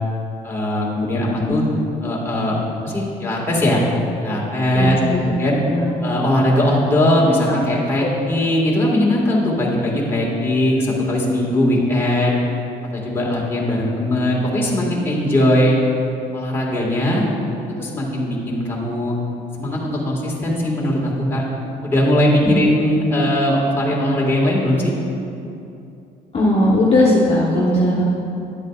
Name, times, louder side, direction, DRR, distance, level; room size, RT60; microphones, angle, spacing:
voice 1, 0.4-1.7 2.0-2.6 2.8-3.8 4.2-5.6 6.0-12.4 12.9-15.8 16.3-17.3 17.8-19.2 19.6-21.4 21.8-24.9 27.7-28.0, left 1 dB, 15° left, -5 dB, 1.9 m, -19 dB
voice 2, 4.7-5.2 5.7-5.8 8.0-8.1 22.4-22.5 26.3-28.0, left 1 dB, 35° left, -6 dB, 1.4 m, -17 dB
11.0 x 8.1 x 2.5 m, 2.7 s
cardioid pair, 110°, 17 cm